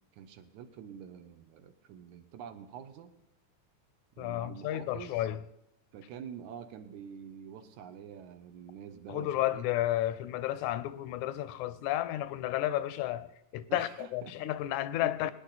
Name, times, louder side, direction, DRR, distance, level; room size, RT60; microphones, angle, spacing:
voice 1, 0.1-3.1 4.2-5.3 5.9-9.7 13.7-14.4 15.0-15.3, right 8 dB, 85° right, 2.3 m, -46 dB
voice 2, 4.2-5.4 9.1-15.3, left 14 dB, 85° left, 2.0 m, -32 dB
22.0 x 10.0 x 4.1 m
omnidirectional pair, 3.4 m